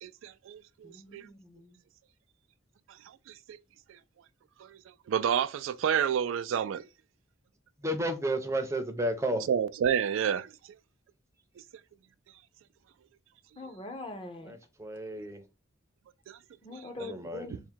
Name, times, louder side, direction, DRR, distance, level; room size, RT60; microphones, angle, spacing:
voice 1, 0.0-1.3 3.3-3.6 4.6-4.8 5.1-6.9 9.5-10.5 15.2-15.3 16.3-16.4 16.7-16.8 17.5-17.6, right 8 dB, 85° right, 0.3 m, -30 dB
voice 2, 0.8-1.8 13.6-14.6 16.6-17.6, left 2 dB, 25° left, 0.7 m, -43 dB
voice 3, 7.8-9.5 14.5-15.4 17.0-17.5, right 1 dB, 15° right, 0.5 m, -32 dB
3.5 x 2.1 x 4.4 m
head